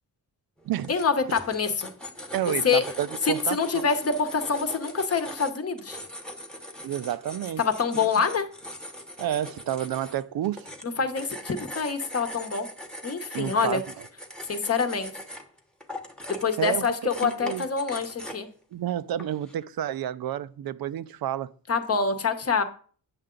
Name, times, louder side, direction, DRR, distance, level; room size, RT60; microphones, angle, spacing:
sound 1, 0.6-18.6 19.2-19.6, equal, ahead, 0.9 m, -41 dB
voice 1, 0.9-1.9 2.5-2.8 3.3-6.0 7.6-8.5 10.8-12.7 13.0-13.8 14.5-15.1 16.4-18.5 21.7-22.6, left 5 dB, 40° left, 0.9 m, -26 dB
voice 2, 2.3-3.8 6.8-7.6 7.9-8.1 9.2-10.7 13.3-13.8 16.6-16.9 17.2-17.6 18.7-21.5, right 11 dB, 70° right, 0.5 m, -30 dB
9.1 x 6.6 x 3.8 m
wide cardioid pair, 150°, 37 cm